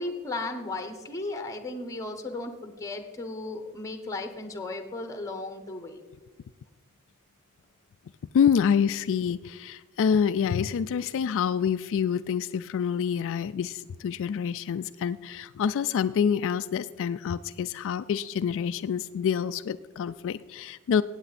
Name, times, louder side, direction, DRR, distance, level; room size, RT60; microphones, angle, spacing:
voice 1, 0.0-6.0, left 2 dB, 15° left, 7 dB, 1.0 m, -35 dB
voice 2, 8.3-21.0, left 7 dB, 60° left, 11 dB, 0.3 m, -27 dB
16.0 x 8.7 x 4.2 m, 1.3 s
head